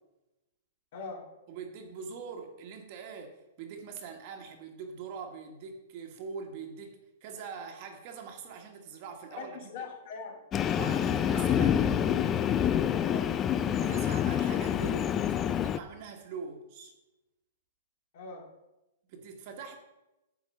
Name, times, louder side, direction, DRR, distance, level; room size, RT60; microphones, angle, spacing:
voice 1, 0.9-1.3 9.3-10.4 13.1-13.4 18.1-18.5, left 4 dB, 50° left, 2 dB, 2.1 m, -41 dB
voice 2, 1.5-9.5 10.8-11.9 13.8-15.2 15.5-16.9 19.1-19.8, right 5 dB, 40° right, 4 dB, 1.4 m, -43 dB
Train, 10.5-15.8, left 9 dB, 20° left, 0.3 m, -27 dB
10.0 x 4.6 x 7.4 m, 0.97 s
hypercardioid pair, 165°, 0 cm